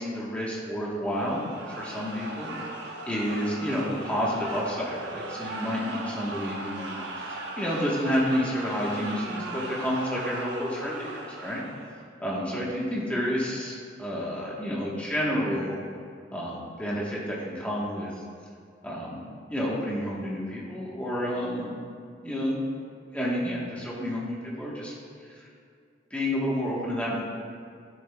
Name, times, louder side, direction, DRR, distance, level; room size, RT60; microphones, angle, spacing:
voice 1, 0.0-2.6 2.8-11.6 12.2-15.8 16.3-18.1 18.8-19.2 19.5-21.7 22.2-22.6 23.1-24.9 25.2-25.5 26.1-27.2, equal, 5° left, -6 dB, 1.2 m, -30 dB
sound 1, 1.1-12.0, right 2 dB, 70° right, 1.0 m, -38 dB
12.5 x 7.1 x 2.3 m, 2.3 s
head